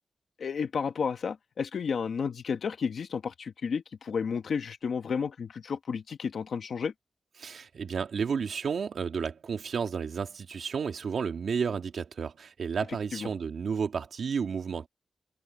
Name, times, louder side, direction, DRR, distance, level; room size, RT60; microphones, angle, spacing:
voice 1, 0.4-6.9 13.1-13.3, left 6 dB, 70° left, 1.1 m, -32 dB
voice 2, 7.4-14.9, right 6 dB, 70° right, 2.5 m, -32 dB
wide cardioid pair, 155°, 0 cm